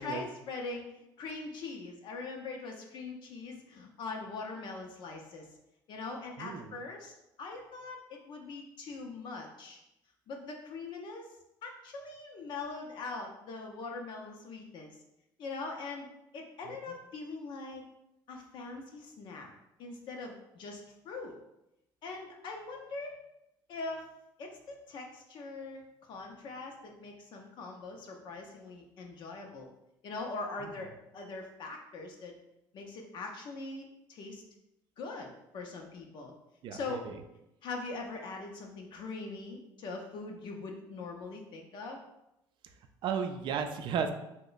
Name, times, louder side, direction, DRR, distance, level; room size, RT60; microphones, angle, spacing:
voice 1, 0.0-5.5 5.9-7.1 7.4-9.8 10.3-11.3 11.6-15.0 15.4-16.1 16.3-17.8 18.3-19.5 19.8-21.4 22.0-23.1 23.7-24.1 24.4-25.8 26.1-29.7 30.0-32.3 32.7-34.4 35.0-36.3 36.7-37.0 37.6-42.0, left 3 dB, 55° left, 2 dB, 0.5 m, -42 dB
voice 2, 6.4-6.8 30.6-30.7 36.6-37.0 43.0-44.1, right 7 dB, 55° right, 7 dB, 0.4 m, -34 dB
2.9 x 2.1 x 3.9 m, 0.88 s
cardioid pair, 100°, 9 cm